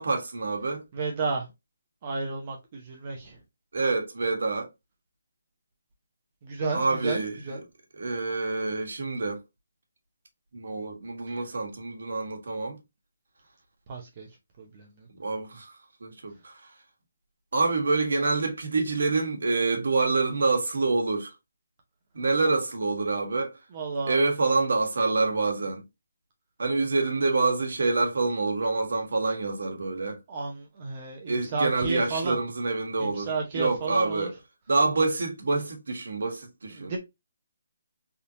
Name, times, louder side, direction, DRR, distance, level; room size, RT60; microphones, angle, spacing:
voice 1, 0.0-0.8 3.7-4.7 6.7-7.6 7.9-9.4 10.5-12.8 15.1-15.7 16.0-16.6 17.5-21.3 22.1-23.6 24.0-25.8 26.6-30.2 31.3-34.3 34.7-36.9, right 3 dB, 70° right, 1.3 m, -27 dB
voice 2, 0.9-1.5 2.0-3.4 6.4-7.6 11.3-11.4 13.9-14.3 14.6-15.1 23.7-24.2 30.3-32.4 33.0-34.3 36.8-37.0, right 4 dB, 30° right, 0.7 m, -32 dB
3.5 x 2.7 x 2.7 m
hypercardioid pair, 165°, 0 cm